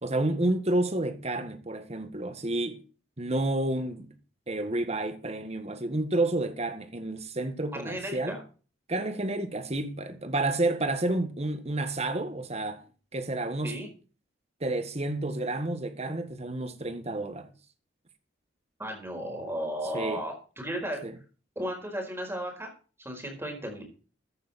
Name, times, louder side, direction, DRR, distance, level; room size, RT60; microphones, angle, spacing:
voice 1, 0.0-2.8 3.2-4.1 4.5-8.4 8.9-12.9 13.1-13.8 14.6-17.5 19.9-20.2 21.0-21.1, right 2 dB, 35° right, 1.7 m, -30 dB
voice 2, 7.7-8.4 13.6-13.9 18.8-21.0 21.5-22.7 23.0-23.8, equal, 15° right, 4.7 m, -35 dB
14.5 x 9.3 x 4.3 m
head